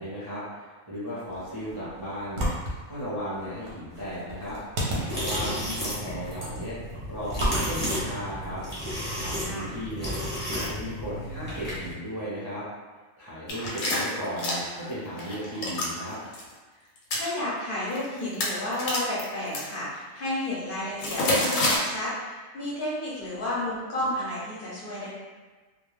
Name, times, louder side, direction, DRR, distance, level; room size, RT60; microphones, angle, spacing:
voice 1, 0.0-2.5 2.9-4.6 5.1-6.8 7.1-8.6 9.2-10.1 10.5-12.6 13.2-16.2, equal, 30° right, -12 dB, 0.5 m, -35 dB
sound 1, 1.3-8.9, right 1 dB, 60° right, 0.7 m, -34 dB
sound 2, 4.9-11.9, equal, 10° left, 0.9 m, -33 dB
voice 2, 5.3-5.9 9.4-9.8 17.1-25.1, left 1 dB, 50° left, -8 dB, 0.8 m, -32 dB
sound 3, 13.5-14.9 15.2-15.9 16.3-16.4 17.0-17.3 17.9-18.1 18.3-19.6 21.0-21.8, left 2 dB, 85° left, 1.0 m, -27 dB
2.3 x 2.2 x 3.1 m, 1.3 s
omnidirectional pair, 1.4 m